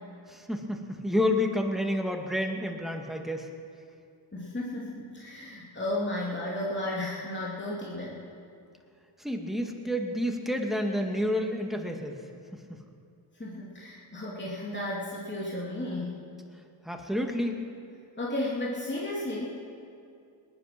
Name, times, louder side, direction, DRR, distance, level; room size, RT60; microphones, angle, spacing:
voice 1, 0.3-3.5 9.2-12.2 12.5-12.8 16.8-17.6, left 1 dB, ahead, 2 dB, 2.1 m, -29 dB
voice 2, 4.3-8.2 13.3-16.2 18.2-19.5, left 1 dB, 20° left, -5 dB, 3.0 m, -33 dB
19.0 x 11.0 x 6.1 m, 2.4 s
cardioid pair, 55°, 49 cm